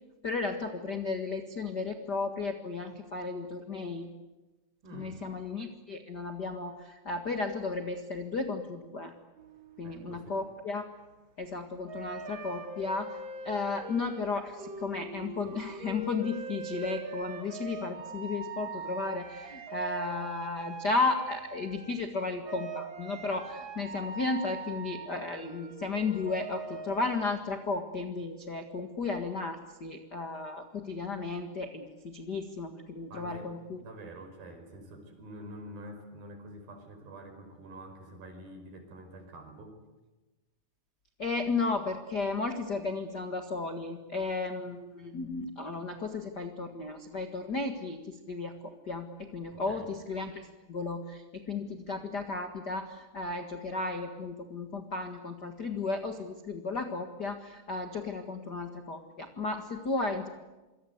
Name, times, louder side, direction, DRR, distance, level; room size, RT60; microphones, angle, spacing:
voice 1, 0.2-4.1 4.9-9.1 9.8-10.8 11.4-13.2 13.4-33.8 41.2-60.3, left 3 dB, 50° left, 6 dB, 1.2 m, -34 dB
voice 2, 4.8-5.2 9.8-10.4 33.1-39.8 49.5-49.9, right 1 dB, 60° right, 6 dB, 6.7 m, -47 dB
sound 1, 9.4-10.6 11.8-22.1 22.4-27.4, right 4 dB, 35° right, 2.5 m, -42 dB
27.5 x 24.0 x 8.3 m, 1.1 s
omnidirectional pair, 4.8 m